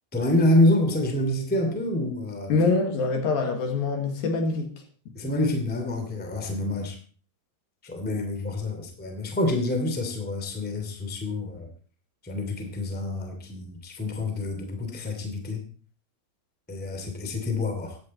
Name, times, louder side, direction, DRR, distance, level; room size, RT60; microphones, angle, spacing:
voice 1, 0.1-2.5 5.1-7.0 7.8-11.7 12.2-15.7 16.7-18.0, left 1 dB, 5° left, 1.8 m, -27 dB
voice 2, 2.5-4.7, left 3 dB, 65° left, 3.4 m, -24 dB
15.5 x 11.0 x 4.3 m
omnidirectional pair, 4.7 m